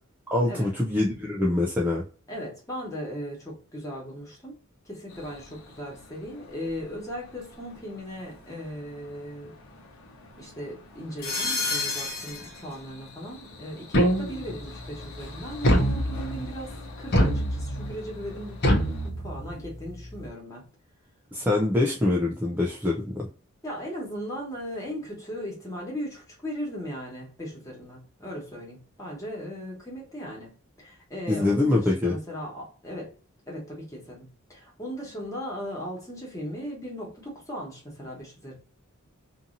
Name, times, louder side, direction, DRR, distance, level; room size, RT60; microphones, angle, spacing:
voice 1, 0.3-2.0 21.3-23.3 31.3-32.1, left 2 dB, 10° right, -2 dB, 0.3 m, -24 dB
voice 2, 2.3-4.6 4.8-9.5 10.4-16.7 17.0-18.6 19.0-20.7 23.6-30.5 30.8-33.1 33.5-38.5, equal, 15° left, -3 dB, 1.2 m, -37 dB
sound 1, 5.1-19.1, left 3 dB, 80° left, 0.9 m, -39 dB
sound 2, 13.9-14.6 15.6-16.5 17.1-17.9 18.6-19.6, equal, 50° left, 0.7 m, -24 dB
2.7 x 2.6 x 2.5 m, 0.39 s
head